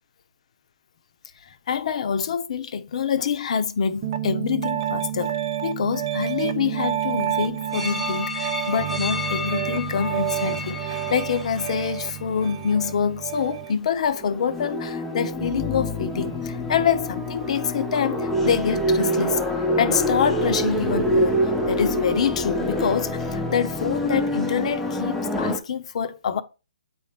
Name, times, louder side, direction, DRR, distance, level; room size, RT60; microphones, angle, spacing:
voice 1, 1.5-19.4 19.8-26.4, left 7 dB, 50° left, 0.8 m, -26 dB
Piano, 4.0-13.7, right 11 dB, 40° right, 0.8 m, -29 dB
sound 1, 7.7-13.0 13.6-13.7 14.1-25.6, left 1 dB, 5° left, 0.7 m, -27 dB
8.4 x 4.3 x 3.6 m
hypercardioid pair, 150°, 4 cm